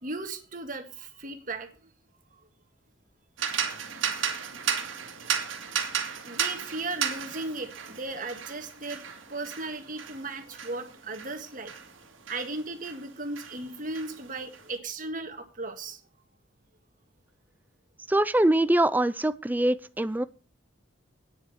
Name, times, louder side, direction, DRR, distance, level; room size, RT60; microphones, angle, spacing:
voice 1, 0.0-1.9 4.4-4.5 6.2-11.7 12.3-16.0, right 2 dB, 45° right, 1.8 m, -36 dB
sound 1, 3.4-13.0 13.4-14.6, right 7 dB, 85° right, 2.0 m, -34 dB
voice 2, 18.1-20.2, right 1 dB, 10° right, 0.4 m, -23 dB
9.6 x 7.8 x 7.2 m
head